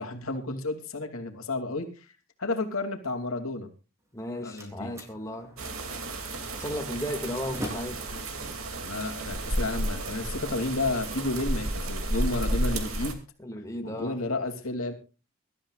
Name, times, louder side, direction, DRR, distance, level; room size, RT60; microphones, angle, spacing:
voice 1, 0.0-2.1 2.4-3.7 4.4-4.9 8.7-13.2 13.8-14.9, left 2 dB, 80° left, 5 dB, 2.8 m, -31 dB
Slam, 4.0-10.0, equal, 15° right, 3.7 m, -44 dB
voice 2, 4.1-5.5 6.6-8.0 13.4-14.2, equal, 15° left, 3 dB, 2.1 m, -35 dB
sound 1, 5.6-13.1, right 1 dB, 80° right, 2.6 m, -32 dB
24.5 x 13.0 x 2.4 m, 0.32 s
head